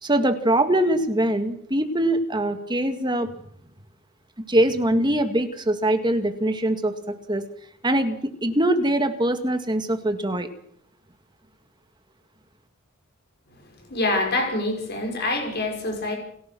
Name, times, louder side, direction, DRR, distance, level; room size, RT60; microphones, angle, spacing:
voice 1, 0.0-3.3 4.5-7.4 7.8-10.5, right 1 dB, 20° right, 7 dB, 2.0 m, -23 dB
voice 2, 13.9-16.1, left 2 dB, 50° left, 2 dB, 6.2 m, -25 dB
29.0 x 17.0 x 6.2 m, 0.68 s
head